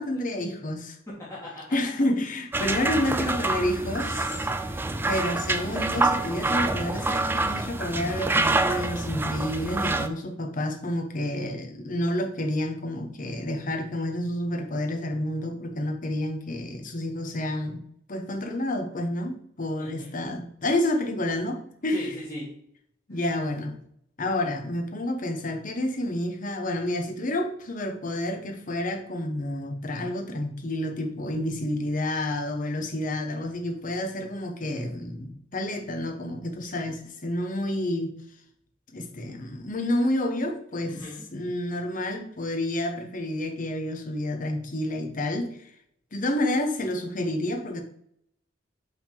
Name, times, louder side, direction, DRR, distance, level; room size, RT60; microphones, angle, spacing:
voice 1, 0.0-1.0 1.7-17.8 18.1-22.1 23.1-23.7 24.2-38.1 38.9-41.0 41.3-45.6 46.1-47.8, left 1 dB, 45° left, 4 dB, 1.0 m, -29 dB
voice 2, 1.1-1.6 19.8-20.1 21.9-22.5 40.9-41.2, equal, 15° left, -9 dB, 1.7 m, -38 dB
sound 1, 2.5-10.1, right 2 dB, 10° right, 0.3 m, -27 dB
5.9 x 3.7 x 5.2 m, 0.70 s
head